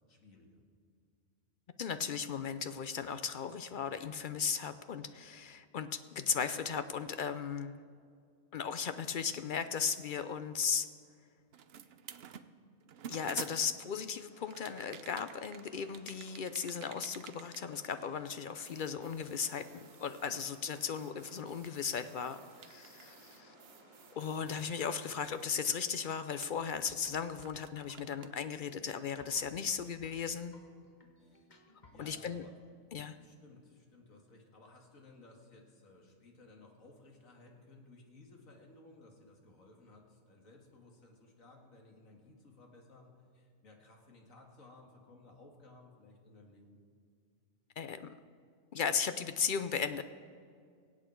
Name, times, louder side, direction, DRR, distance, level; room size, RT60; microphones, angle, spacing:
voice 1, 0.1-0.6 31.2-31.5 31.9-32.8 33.2-46.8, left 2 dB, 80° left, 1 dB, 2.3 m, -58 dB
voice 2, 1.8-7.8 8.5-10.9 13.1-23.5 24.2-30.5 32.0-32.4 32.9-33.2 47.8-48.1 48.7-50.0, left 6 dB, 60° left, 11 dB, 0.5 m, -36 dB
sound 1, 11.5-14.0 14.5-18.4 18.7-26.1 26.4-28.4, right 8 dB, 60° right, 0.8 m, -52 dB
sound 2, 14.3-25.7, right 1 dB, 75° right, 3.4 m, -60 dB
sound 3, 26.9-32.2, left 1 dB, 35° left, 1.4 m, -61 dB
23.5 x 8.5 x 4.5 m, 2.2 s
omnidirectional pair, 1.4 m